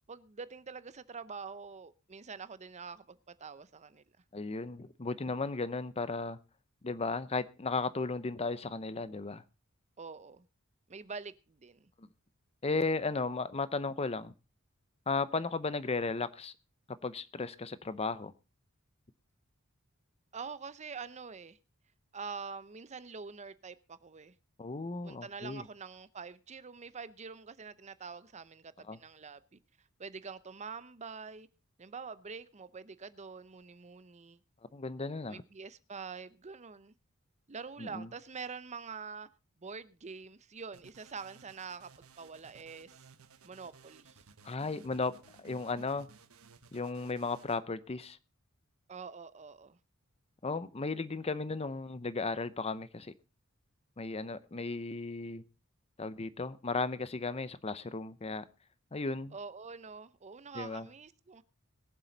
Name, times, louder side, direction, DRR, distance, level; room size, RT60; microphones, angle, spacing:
voice 1, 0.1-4.0 10.0-10.5 10.9-11.9 20.3-21.6 22.1-24.3 25.0-29.6 30.0-31.5 31.8-34.4 35.3-36.9 37.5-39.3 39.6-41.9 42.2-43.1 43.4-44.2 48.9-49.8 59.3-61.4, right 5 dB, 35° right, 0.7 m, -45 dB
voice 2, 4.3-6.4 6.8-9.4 12.0-12.1 12.6-14.3 15.1-16.5 17.0-18.3 24.6-25.6 28.9-29.0 34.7-35.4 37.8-38.1 44.4-46.1 46.7-48.2 50.4-53.1 54.0-55.4 56.0-58.4 58.9-59.3 60.5-60.9, left 3 dB, 30° left, 0.7 m, -35 dB
sound 1, 40.7-47.6, right 4 dB, 85° right, 1.2 m, -58 dB
21.5 x 7.6 x 4.0 m
head